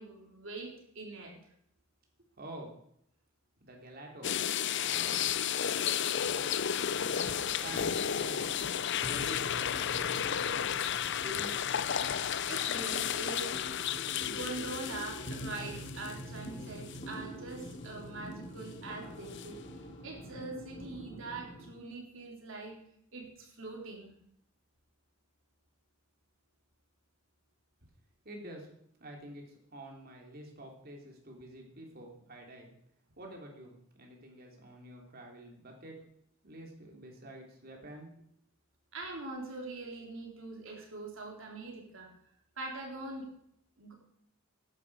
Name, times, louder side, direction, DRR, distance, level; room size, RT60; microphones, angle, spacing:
voice 1, 0.0-1.3 12.5-13.5 14.2-19.6 20.0-22.8 23.1-24.1 38.9-42.1 42.6-43.3 43.8-43.9, right 3 dB, 65° right, 0 dB, 3.7 m, -43 dB
voice 2, 2.4-2.7 3.6-4.3 4.7-7.1 7.6-8.5 9.0-9.9 10.2-10.9 11.2-11.5 28.2-28.7 29.0-32.7 33.2-35.9 36.4-38.1, right 1 dB, 45° right, 1 dB, 3.3 m, -48 dB
sound 1, 4.2-16.5 16.9-17.0 19.3-19.5, left 9 dB, 60° left, 0.6 m, -33 dB
sound 2, 5.1-21.7, equal, 35° left, 2.0 m, -46 dB
14.5 x 11.0 x 4.9 m, 0.70 s
head